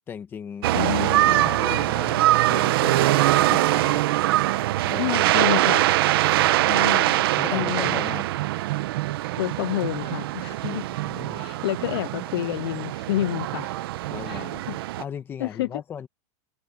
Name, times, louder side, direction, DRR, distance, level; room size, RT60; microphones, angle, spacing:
voice 1, 0.1-4.0 4.8-5.9 6.3-6.8 7.4-8.2 10.5-11.5 14.1-14.6 15.0-16.1, left 8 dB, 10° left, 1.2 m, -38 dB
sound 1, 0.6-15.0, right 16 dB, 45° right, 0.7 m, -23 dB
voice 2, 0.7-1.9 3.5-3.6 5.0-5.9 6.6-8.0 9.4-10.9 11.3-13.8 14.3-14.8 15.4-15.8, left 15 dB, 45° left, 0.4 m, -29 dB
supercardioid pair, 180°, 17 cm